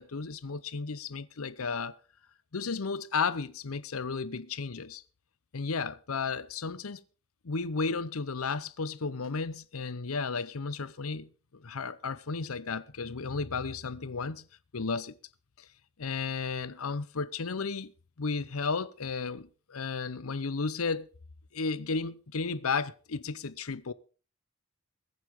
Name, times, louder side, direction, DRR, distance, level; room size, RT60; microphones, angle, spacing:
voice 1, 0.0-1.9 2.5-5.0 5.5-7.0 7.4-14.4 14.7-15.2 15.6-15.7 16.0-17.9 18.2-21.1 21.5-23.9, left 4 dB, 90° left, 0.8 m, -33 dB
22.0 x 9.6 x 3.7 m
head